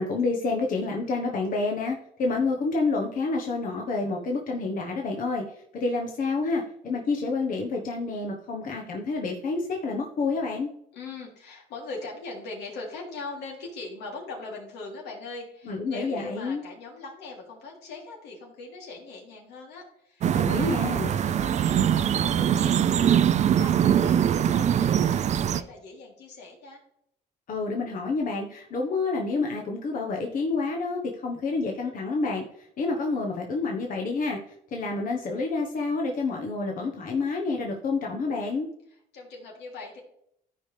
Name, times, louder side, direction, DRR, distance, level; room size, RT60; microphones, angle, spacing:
voice 1, 0.0-5.4 5.7-10.7 15.7-16.6 20.3-21.1 27.5-34.4 34.7-38.7, left 3 dB, 55° left, 0 dB, 1.3 m, -28 dB
voice 2, 10.9-26.8 38.9-40.0, left 3 dB, 85° left, -1 dB, 3.1 m, -41 dB
sound 1, 20.2-25.6, right 9 dB, 45° right, 0.5 m, -22 dB
14.0 x 4.9 x 3.4 m, 0.73 s
cardioid pair, 110°, 17 cm